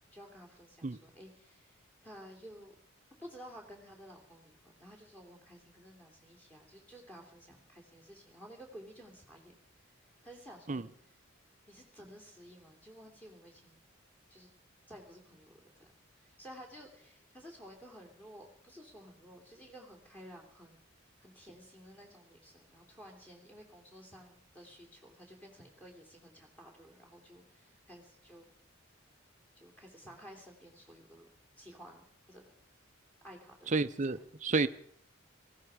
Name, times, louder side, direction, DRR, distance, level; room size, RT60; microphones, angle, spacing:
voice 1, 0.1-2.7 3.2-9.6 10.2-10.9 11.7-13.8 14.3-14.5 14.9-20.8 21.2-28.5 29.5-31.3 31.6-32.4 33.2-33.7 34.0-34.2, equal, 10° left, 3.2 m, -53 dB
voice 2, 33.7-34.7, right 3 dB, 35° right, 0.6 m, -30 dB
18.5 x 15.5 x 5.0 m
head